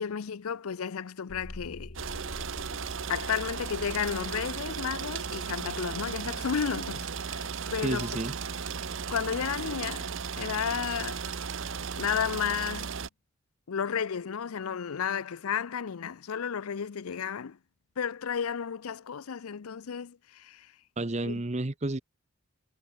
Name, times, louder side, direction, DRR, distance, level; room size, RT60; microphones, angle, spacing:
voice 1, 0.0-1.9 3.1-8.2 9.1-11.4 12.0-13.0 13.7-17.6 18.0-20.7 21.2-21.3, left 7 dB, 85° left, 0.5 m, -33 dB
sound 1, 1.3-6.3, left 1 dB, 50° left, 1.4 m, -48 dB
sound 2, 2.0-13.1, right 6 dB, 60° right, 0.8 m, -36 dB
voice 2, 7.8-8.4 8.6-8.7 21.0-22.0, right 2 dB, 30° right, 0.8 m, -31 dB
head